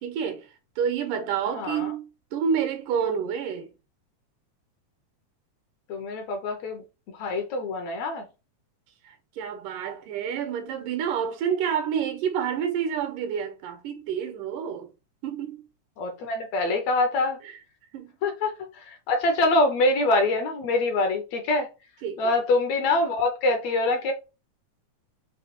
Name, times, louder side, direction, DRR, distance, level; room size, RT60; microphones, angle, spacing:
voice 1, 0.0-2.1 2.3-3.7 9.0-14.9 15.2-15.6 17.4-17.5 17.9-18.1 22.0-22.4, right 7 dB, 85° right, 2.6 m, -29 dB
voice 2, 1.6-1.9 5.9-6.8 7.2-8.2 16.0-17.4 18.2-21.7 22.2-24.1, left 2 dB, 70° left, 1.8 m, -25 dB
5.9 x 2.8 x 3.0 m
omnidirectional pair, 3.7 m